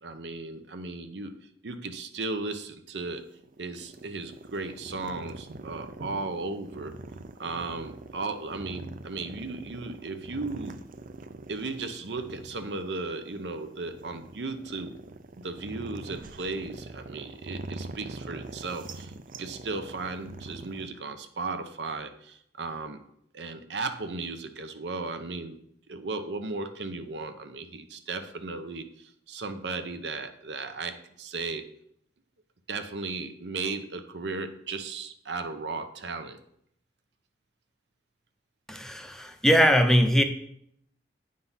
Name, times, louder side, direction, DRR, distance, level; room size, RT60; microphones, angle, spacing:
voice 1, 0.0-3.2 3.6-7.0 7.4-10.7 11.5-14.9 15.4-19.1 19.4-23.0 23.3-25.6 25.9-31.7 32.7-36.4, right 3 dB, 75° right, 8 dB, 0.8 m, -36 dB
sound 1, 3.2-20.9, right 2 dB, 50° right, 0.5 m, -44 dB
voice 2, 38.7-40.2, equal, 5° left, 6 dB, 0.6 m, -21 dB
9.2 x 3.8 x 5.6 m, 0.70 s
head